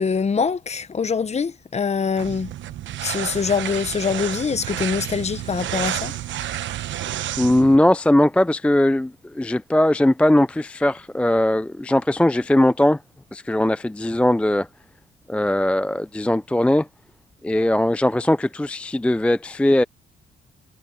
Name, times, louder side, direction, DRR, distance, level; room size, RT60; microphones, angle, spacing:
voice 1, 0.0-2.5 3.0-6.1, left 5 dB, 35° left, 1.1 m, -24 dB
sound 1, 2.2-7.8, right 12 dB, 70° right, 1.0 m, -30 dB
voice 2, 7.4-13.0 13.3-14.7 15.3-16.9 17.4-19.8, left 1 dB, 5° left, 0.4 m, -19 dB
cardioid pair, 90°, 20 cm